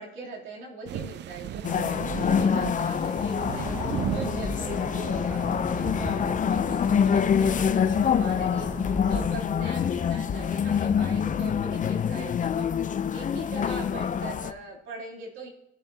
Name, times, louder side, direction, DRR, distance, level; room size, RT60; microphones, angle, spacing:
voice 1, 0.0-15.5, right 2 dB, 85° right, -3 dB, 3.1 m, -41 dB
sound 1, 0.9-6.3, right 11 dB, 60° right, 0.4 m, -36 dB
sound 2, 1.6-14.5, left 7 dB, 40° left, 0.6 m, -26 dB
sound 3, 3.4-9.3, equal, 15° right, 2.1 m, -36 dB
19.0 x 7.1 x 2.8 m, 0.80 s
cardioid pair, 90°, 20 cm